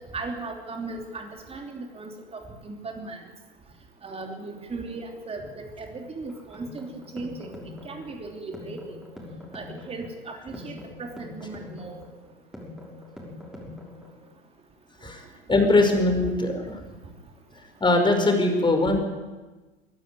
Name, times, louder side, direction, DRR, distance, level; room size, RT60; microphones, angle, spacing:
voice 1, 0.1-3.2 4.0-8.9 9.5-12.0, right 3 dB, 20° right, 3 dB, 3.0 m, -37 dB
sound 1, 6.3-14.3, left 2 dB, ahead, 6.4 m, -43 dB
voice 2, 15.0-16.8 17.8-19.0, left 2 dB, 15° left, 4 dB, 5.0 m, -21 dB
24.0 x 12.0 x 9.6 m, 1.2 s
figure-of-eight pair, 80°, 30 cm